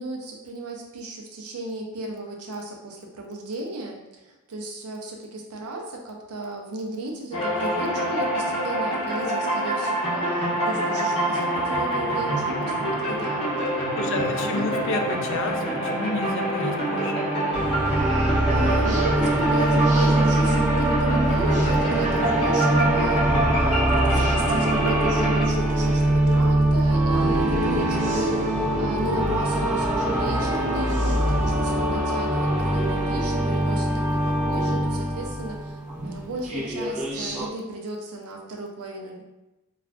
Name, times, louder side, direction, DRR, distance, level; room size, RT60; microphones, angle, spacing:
voice 1, 0.0-13.5 14.0-14.8 18.2-23.3 23.6-39.2, right 2 dB, 80° right, 1 dB, 0.5 m, -35 dB
sound 1, 7.3-25.4, right 1 dB, 25° left, 0.7 m, -25 dB
voice 2, 14.0-17.3, left 3 dB, 60° left, 5 dB, 0.3 m, -31 dB
sound 2, 17.5-37.5, right 1 dB, 30° right, 0.7 m, -23 dB
2.4 x 2.3 x 3.4 m, 1.0 s
head